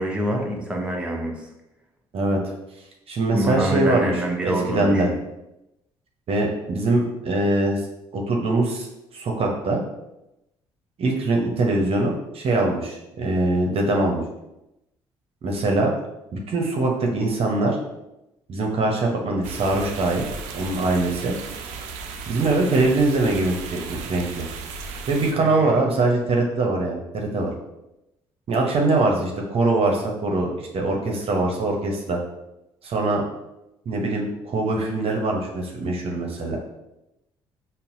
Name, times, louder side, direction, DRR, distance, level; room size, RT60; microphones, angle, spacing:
voice 1, 0.0-1.5 3.3-5.2 25.4-25.7, right 1 dB, 10° right, -1 dB, 0.8 m, -26 dB
voice 2, 3.1-4.1 4.4-5.1 6.3-7.8 8.1-8.9 9.1-9.8 11.0-14.2 15.4-15.9 16.3-17.8 18.5-20.2 20.5-21.3 22.3-24.5 25.1-27.5 28.5-32.2 32.8-33.2 33.9-36.6, right 2 dB, 50° right, 0 dB, 0.8 m, -22 dB
sound 1, 19.4-25.3, right 5 dB, 70° right, 0.4 m, -35 dB
5.4 x 2.1 x 2.6 m, 0.91 s
hypercardioid pair, 50°, 13 cm